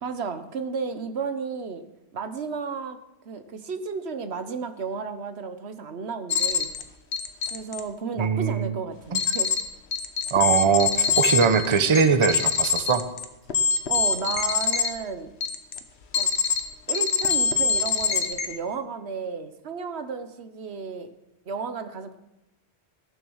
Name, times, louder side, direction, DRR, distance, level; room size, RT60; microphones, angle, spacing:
voice 1, 0.0-1.8 2.1-3.0 3.2-6.7 7.5-9.5 13.9-15.3 16.2-16.3 16.9-21.1 21.5-22.2, right 5 dB, 80° right, 9 dB, 1.2 m, -33 dB
sound 1, 6.3-6.8 7.1-7.8 9.1-9.6 9.9-14.9 15.4-15.8 16.1-16.6 16.9-18.5, left 6 dB, 90° left, 1.2 m, -24 dB
voice 2, 8.2-8.7 9.1-9.2 10.3-13.0, right 6 dB, 30° right, 9 dB, 0.7 m, -21 dB
14.0 x 7.1 x 6.3 m, 0.92 s
omnidirectional pair, 1.1 m